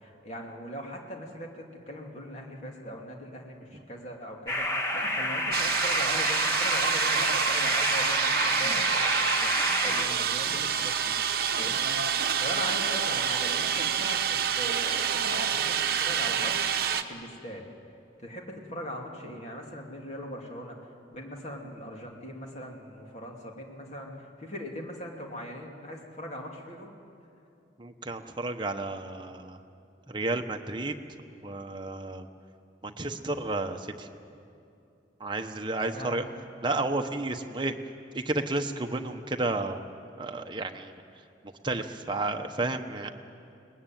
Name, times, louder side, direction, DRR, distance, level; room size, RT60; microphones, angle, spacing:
voice 1, 0.0-11.2 11.6-12.0 12.4-16.7 17.1-17.6 18.2-20.8 21.1-24.1 24.4-26.9 35.8-36.2, equal, 35° left, 0 dB, 2.8 m, -40 dB
sound 1, 4.5-10.0, left 1 dB, 15° left, 1.8 m, -28 dB
sound 2, 5.5-17.0, right 7 dB, 55° right, 1.0 m, -27 dB
voice 2, 27.8-29.6 30.1-30.9 31.4-32.3 32.8-34.1 35.2-36.2 36.6-37.7 38.1-39.8 40.2-40.9 41.6-43.1, right 2 dB, 25° right, 5 dB, 1.1 m, -31 dB
22.5 x 20.0 x 9.3 m, 2.6 s
head